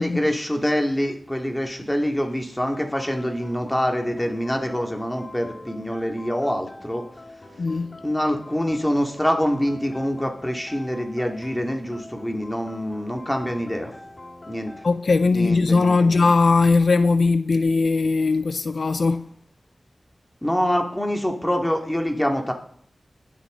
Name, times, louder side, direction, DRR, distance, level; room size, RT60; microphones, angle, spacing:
voice 1, 0.0-7.1 8.0-13.9 14.5-14.8 15.3-16.3 20.4-22.5, equal, 10° left, 2.5 m, -25 dB
sound 1, 2.7-15.0, left 2 dB, 45° left, 2.1 m, -44 dB
voice 2, 7.6-8.0 14.8-19.3, left 3 dB, 80° left, 0.5 m, -19 dB
21.0 x 7.3 x 4.0 m
wide cardioid pair, 55°, 0 cm